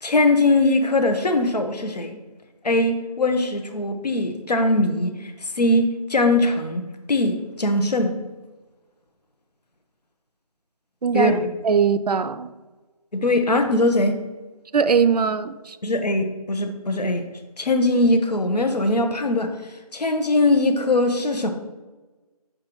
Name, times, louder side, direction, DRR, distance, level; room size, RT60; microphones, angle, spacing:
voice 1, 0.0-2.2 2.6-6.8 7.1-8.2 11.1-11.5 13.1-14.2 15.8-17.2 17.6-19.5 19.9-21.5, left 2 dB, 90° left, 6 dB, 1.0 m, -21 dB
voice 2, 11.0-11.4 11.6-12.5 14.7-15.8, right 6 dB, 80° right, 12 dB, 0.5 m, -20 dB
6.6 x 4.9 x 3.0 m, 1.2 s
figure-of-eight pair, 170°, 20 cm